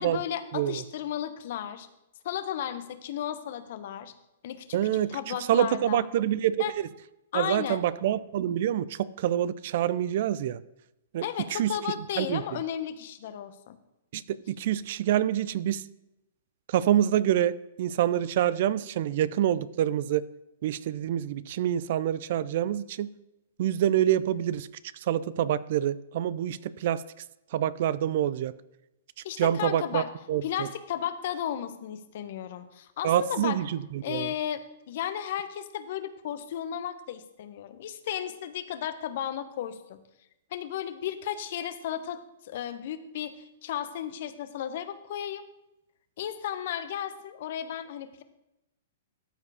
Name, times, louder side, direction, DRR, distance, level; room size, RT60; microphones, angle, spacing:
voice 1, 0.0-1.9 2.2-4.1 4.4-6.1 6.6-6.7 7.3-7.8 11.2-13.8 29.2-30.1 30.4-33.6 34.0-40.0 40.5-45.4 46.2-48.2, left 10 dB, 60° left, 11 dB, 0.9 m, -34 dB
voice 2, 4.7-6.6 7.3-10.6 11.1-11.2 11.5-11.7 12.2-12.4 14.1-14.2 14.5-15.8 16.7-20.3 20.6-23.1 23.6-24.7 25.1-27.0 27.5-28.5 29.4-30.0 30.3-30.7 33.0-34.3, right 11 dB, 55° right, 17 dB, 0.4 m, -26 dB
13.0 x 4.8 x 4.9 m, 0.92 s
hypercardioid pair, 120°, 0 cm